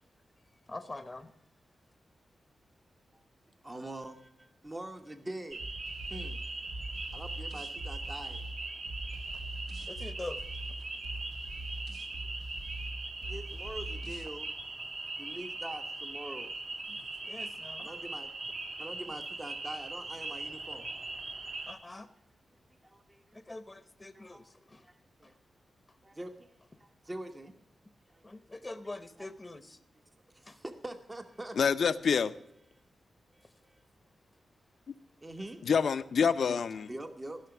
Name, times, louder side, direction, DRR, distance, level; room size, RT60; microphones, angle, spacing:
voice 1, 0.7-1.3 9.9-10.4 17.2-17.9 21.7-22.1 23.3-24.8 28.2-29.8 30.5-30.6, left 2 dB, 20° left, 11 dB, 0.8 m, -44 dB
voice 2, 3.6-5.6 6.1-6.4 7.1-8.4 13.2-14.5 15.2-16.5 17.8-18.3 18.8-20.9 22.8-23.4 24.1-24.4 24.8-25.3 26.0-26.5 26.8-27.5 28.1-28.2 28.6-28.8 29.2-29.6 30.3-31.6 33.3-33.8 35.2-35.7 36.9-37.4, right 1 dB, 20° right, 6 dB, 1.0 m, -44 dB
sound 1, 5.5-21.7, right 2 dB, 50° right, 1.9 m, -40 dB
sound 2, 5.6-14.3, right 1 dB, 75° right, 1.6 m, -42 dB
voice 3, 31.6-32.3 35.6-36.9, left 6 dB, 70° left, 13 dB, 0.6 m, -27 dB
15.5 x 5.8 x 6.9 m, 0.81 s
wide cardioid pair, 100°, 0 cm